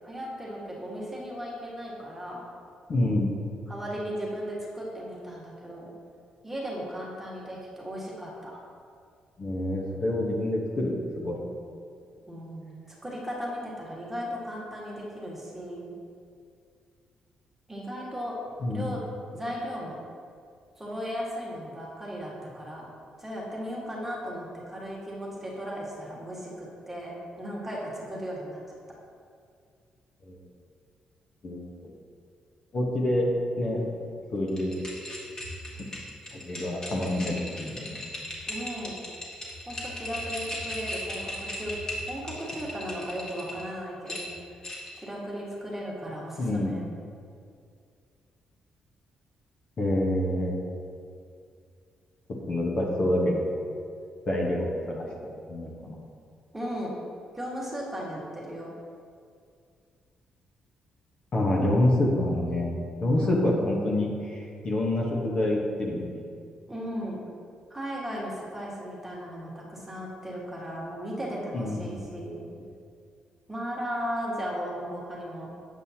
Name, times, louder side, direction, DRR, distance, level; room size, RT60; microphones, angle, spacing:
voice 1, 0.0-2.4 3.7-5.9 6.4-8.6 12.3-15.9 17.7-18.4 18.7-19.0 19.3-20.0 20.8-22.8 23.2-28.6 38.5-39.0 39.7-41.7 42.1-44.4 44.9-46.8 56.5-56.9 57.3-58.7 63.1-63.4 66.7-67.2 67.7-72.5 73.5-75.5, equal, 10° right, -5 dB, 1.6 m, -36 dB
voice 2, 2.9-3.3 9.4-11.4 18.6-18.9 30.2-30.4 31.4-31.9 32.7-33.3 33.6-33.9 34.3-34.8 36.4-38.0 46.4-46.7 49.8-50.5 52.5-53.4 54.3-55.9 61.3-62.7 63.0-66.2 71.5-72.0, left 1 dB, 50° left, -2 dB, 1.2 m, -27 dB
sound 1, 34.5-43.6 44.1-45.0, left 1 dB, 30° left, 1.6 m, -37 dB
8.2 x 5.5 x 2.9 m, 2.3 s
cardioid pair, 85°, 2 cm